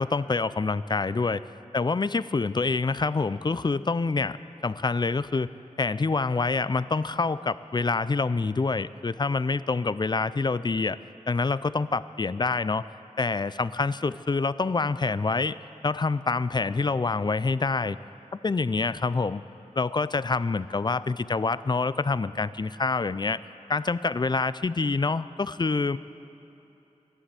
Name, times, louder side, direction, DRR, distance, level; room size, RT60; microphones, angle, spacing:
voice 1, 0.0-1.4 1.7-5.5 5.8-11.0 11.3-12.8 13.2-15.6 15.8-18.0 18.4-19.4 19.8-23.4 23.7-26.0, left 3 dB, 35° left, 16 dB, 0.4 m, -26 dB
14.5 x 11.5 x 8.2 m, 2.9 s
wide cardioid pair, 65°, 12 cm